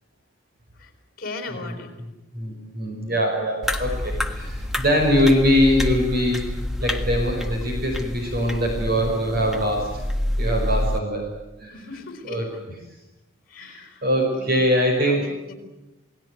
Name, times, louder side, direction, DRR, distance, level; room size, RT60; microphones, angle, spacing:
voice 1, 1.2-1.9 11.7-12.6 13.5-14.1 14.3-14.7 15.1-15.5, left 2 dB, 45° left, 6 dB, 4.9 m, -38 dB
voice 2, 2.3-6.4 6.8-9.9 10.4-11.2 11.6-11.7 12.3-12.4 13.6-15.2, equal, 45° right, 2 dB, 5.4 m, -22 dB
sound 1, 3.6-11.0, left 1 dB, ahead, 1.6 m, -28 dB
28.5 x 19.0 x 9.4 m, 1.0 s
head